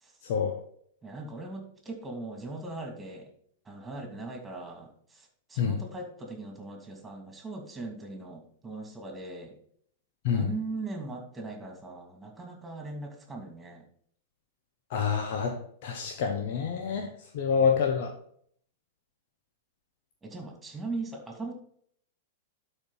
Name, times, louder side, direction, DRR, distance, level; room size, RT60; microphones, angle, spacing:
voice 1, 0.2-0.6 5.6-5.8 10.2-10.5 14.9-17.1 17.3-18.1, left 6 dB, 55° left, 3 dB, 1.1 m, -27 dB
voice 2, 1.0-3.3 3.6-9.5 10.3-13.8 17.6-17.7 20.2-21.5, right 3 dB, 15° right, 2 dB, 2.6 m, -39 dB
11.5 x 4.6 x 4.0 m, 0.62 s
figure-of-eight pair, 100°, 0 cm